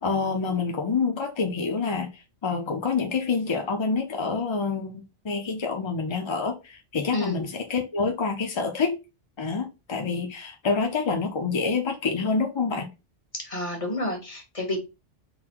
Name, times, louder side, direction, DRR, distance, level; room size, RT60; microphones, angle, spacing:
voice 1, 0.0-2.1 2.4-9.0 9.4-12.9, left 4 dB, 50° left, 0.3 m, -27 dB
voice 2, 7.1-7.5 13.3-14.8, left 1 dB, 30° left, 1.2 m, -30 dB
3.8 x 2.1 x 4.3 m
omnidirectional pair, 1.2 m